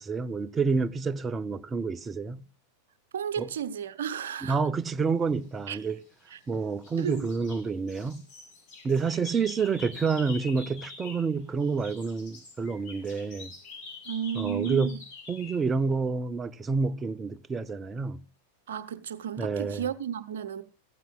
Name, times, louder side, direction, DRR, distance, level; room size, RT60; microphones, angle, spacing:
voice 1, 0.0-2.4 3.4-3.5 4.4-6.0 6.5-8.2 8.8-13.5 14.3-15.0 15.3-18.2 19.4-19.9, right 4 dB, 20° right, 0.6 m, -28 dB
voice 2, 3.1-4.6 5.7-5.8 6.3-6.4 7.0-7.3 14.1-15.0 18.7-20.6, right 9 dB, 60° right, 0.9 m, -33 dB
sound 1, 5.7-6.5 6.8-11.3 11.6-15.6, left 4 dB, 40° left, 6.8 m, -46 dB
15.0 x 15.0 x 2.4 m
figure-of-eight pair, 90°, 0 cm